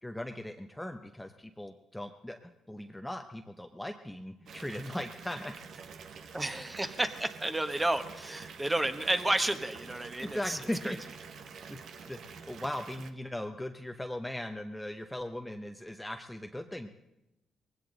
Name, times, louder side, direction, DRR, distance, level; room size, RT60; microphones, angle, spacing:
voice 1, 0.0-5.6 10.2-11.0 11.4-11.8 12.1-16.9, left 1 dB, 5° left, 5 dB, 0.8 m, -39 dB
Water tap faucet / Bathtub (filling or washing) / Fill (with liquid), 4.5-13.1, right 6 dB, 65° right, 1.2 m, -48 dB
voice 2, 6.3-10.6 10.8-10.9, right 1 dB, 15° right, 8 dB, 1.2 m, -31 dB
20.0 x 16.0 x 4.0 m, 0.91 s
cardioid pair, 90°, 0 cm